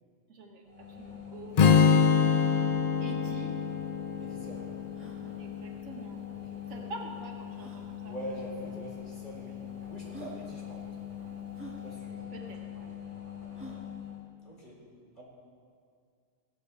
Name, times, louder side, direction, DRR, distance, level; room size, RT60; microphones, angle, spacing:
voice 1, 0.3-2.1 3.0-3.6 5.4-6.2 6.7-8.2 12.3-12.9, right 2 dB, 85° right, 1 dB, 1.8 m, -46 dB
sound 1, 0.6-14.2, left 10 dB, 25° right, 3.1 m, -42 dB
Strum, 1.6-5.7, left 6 dB, 65° left, 0.4 m, -25 dB
voice 2, 4.2-4.7 6.5-6.9 8.0-11.0 11.8-12.5 12.8-12.9 14.4-14.8 15.2-15.3, right 1 dB, 35° left, -5 dB, 3.8 m, -44 dB
sound 2, 4.9-5.2 6.6-6.7 7.5-7.9 8.8-8.9 9.7-9.8 10.1-10.4 11.5-11.8 13.5-13.9, right 1 dB, 10° right, 1.8 m, -47 dB
16.5 x 13.5 x 3.4 m, 2.2 s
omnidirectional pair, 1.4 m